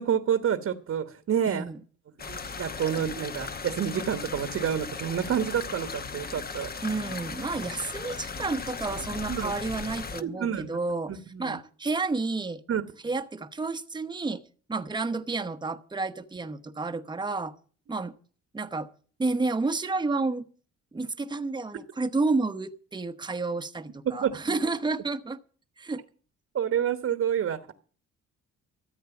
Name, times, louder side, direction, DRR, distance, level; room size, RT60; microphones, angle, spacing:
voice 1, 0.0-1.6 2.3-6.7 9.3-9.5 10.2-10.8 11.1-11.6 12.7-12.8 24.0-24.4 26.5-27.7, right 9 dB, 55° right, 1.2 m, -28 dB
voice 2, 1.5-1.8 6.8-12.6 13.0-14.4 14.7-17.5 17.9-18.1 18.5-18.9 19.2-20.5 20.9-25.4 25.8-26.0, right 3 dB, 15° right, 0.9 m, -30 dB
sound 1, 2.2-10.2, left 5 dB, 30° left, 0.9 m, -37 dB
14.0 x 8.3 x 7.1 m
cardioid pair, 90°, 30 cm